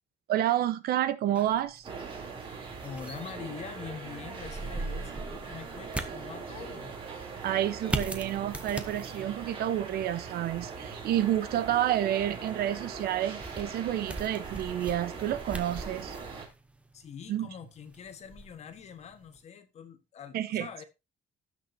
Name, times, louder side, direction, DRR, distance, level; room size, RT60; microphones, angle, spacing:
voice 1, 0.3-1.9 7.4-16.2 17.3-17.5 20.3-20.7, right 12 dB, 65° right, 1.0 m, -29 dB
sound 1, 1.3-19.4, right 2 dB, 5° right, 0.9 m, -42 dB
sound 2, 1.8-16.4, right 5 dB, 30° right, 3.2 m, -41 dB
voice 2, 2.8-6.9 16.9-20.8, left 7 dB, 40° left, 1.5 m, -44 dB
17.5 x 6.3 x 2.8 m
cardioid pair, 175°, 17 cm